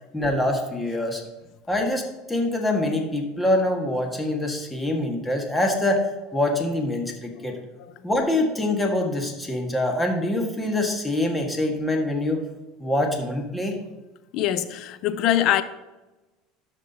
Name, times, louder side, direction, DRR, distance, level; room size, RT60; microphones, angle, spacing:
voice 1, 0.1-1.2 1.7-7.6 8.0-12.4 12.8-13.8, left 1 dB, 10° left, 1.8 m, -25 dB
voice 2, 14.3-15.6, left 12 dB, 60° left, 0.6 m, -23 dB
13.0 x 6.0 x 2.9 m
supercardioid pair, 105°, 0 cm